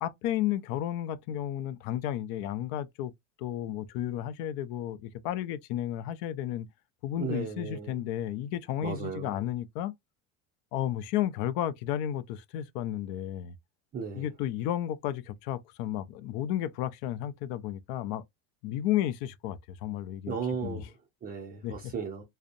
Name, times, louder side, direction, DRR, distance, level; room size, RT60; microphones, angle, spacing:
voice 1, 0.0-3.1 3.4-6.7 7.0-9.9 10.7-13.5 14.2-18.2 18.6-20.4 20.6-20.8 21.6-21.7, left 12 dB, 65° left, 0.5 m, -32 dB
voice 2, 7.2-8.0 8.8-9.4 13.9-14.3 20.3-22.2, right 6 dB, 25° right, 0.5 m, -36 dB
2.5 x 2.0 x 2.5 m
cardioid pair, 135°, 37 cm